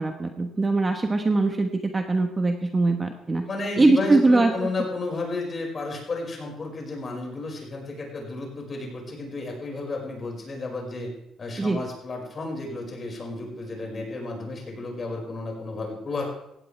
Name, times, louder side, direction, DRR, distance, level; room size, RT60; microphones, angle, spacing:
voice 1, 0.0-3.5 3.8-4.5 11.6-11.8, right 2 dB, 20° right, 4 dB, 1.2 m, -22 dB
voice 2, 3.5-11.1 11.4-16.2, left 2 dB, 30° left, 0 dB, 5.3 m, -32 dB
17.0 x 15.5 x 3.4 m, 0.80 s
cardioid pair, 130°, 0 cm